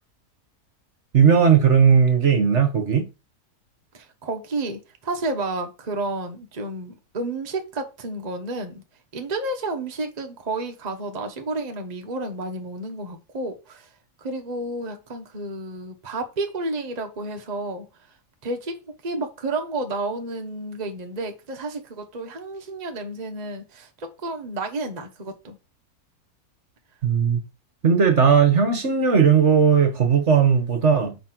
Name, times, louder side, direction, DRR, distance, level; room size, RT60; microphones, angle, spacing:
voice 1, 1.1-3.0 27.0-27.4 27.8-31.1, right 6 dB, 50° right, 1.4 m, -17 dB
voice 2, 3.9-8.8 9.1-13.9 14.2-17.9 18.4-18.8 19.0-25.6, right 2 dB, 30° right, 0.9 m, -31 dB
5.2 x 4.2 x 5.9 m
omnidirectional pair, 1.7 m